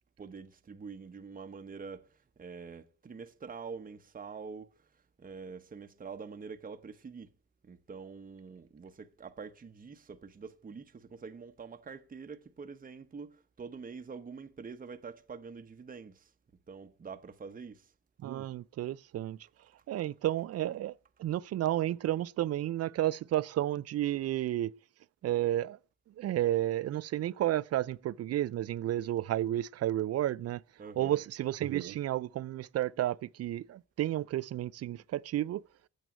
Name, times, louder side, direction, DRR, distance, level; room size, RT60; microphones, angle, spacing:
voice 1, 0.2-2.1 2.4-4.7 5.2-7.3 7.7-16.2 16.7-17.8 30.8-31.2, right 5 dB, 30° right, 1.0 m, -45 dB
voice 2, 18.2-19.4 19.9-20.9 21.2-24.7 25.2-25.8 26.2-30.6 31.0-35.6, right 13 dB, 55° right, 0.5 m, -31 dB
9.2 x 7.7 x 9.1 m
cardioid pair, 90°, 30 cm